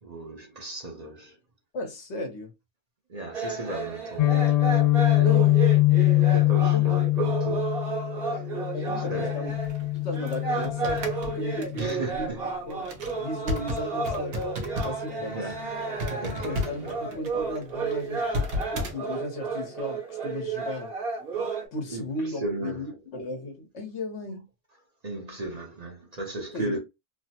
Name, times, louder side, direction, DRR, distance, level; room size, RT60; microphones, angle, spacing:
voice 1, 0.0-1.4 3.1-4.6 5.1-5.3 6.3-7.9 8.2-8.5 8.9-9.4 11.7-12.5 15.2-17.0 21.9-22.9 25.0-26.8, right 1 dB, 40° right, 0.8 m, -36 dB
voice 2, 1.7-2.5 5.2-5.7 6.7-7.0 8.7-9.5 9.9-12.3 12.7-12.9 13.2-14.3 14.8-15.4 16.2-20.9 21.7-24.5 26.5-26.8, left 2 dB, 75° left, 1.3 m, -36 dB
sound 1, 3.3-21.7, right 4 dB, 55° right, 1.3 m, -32 dB
Guitar, 4.2-12.0, left 18 dB, 55° left, 0.4 m, -23 dB
sound 2, 9.5-15.1 15.4-15.6 16.0-18.9, left 2 dB, 75° right, 1.1 m, -34 dB
3.2 x 2.1 x 2.8 m
omnidirectional pair, 1.2 m